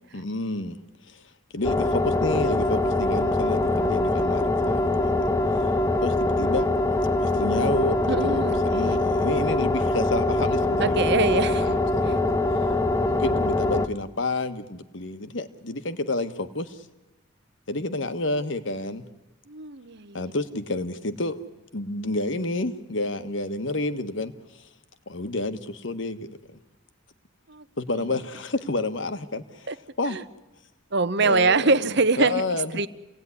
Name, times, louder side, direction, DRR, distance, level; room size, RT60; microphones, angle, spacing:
voice 1, 0.1-0.8 1.1-1.2 1.5-5.2 6.0-6.7 7.2-12.2 13.0-16.8 17.7-19.0 20.1-21.4 21.7-24.7 25.1-26.4 27.8-29.7 30.0-30.2 31.2-31.7 32.2-32.8, left 2 dB, 60° left, 11 dB, 1.4 m, -30 dB
sound 1, 1.6-13.9, left 2 dB, 15° left, 0.9 m, -23 dB
voice 2, 8.1-9.0 10.8-11.8 12.1-12.2 19.5-20.2 27.5-27.6 29.7-29.8 30.1-30.2 30.9-32.9, right 3 dB, 55° right, 14 dB, 0.9 m, -24 dB
28.0 x 18.0 x 9.8 m, 1.0 s
head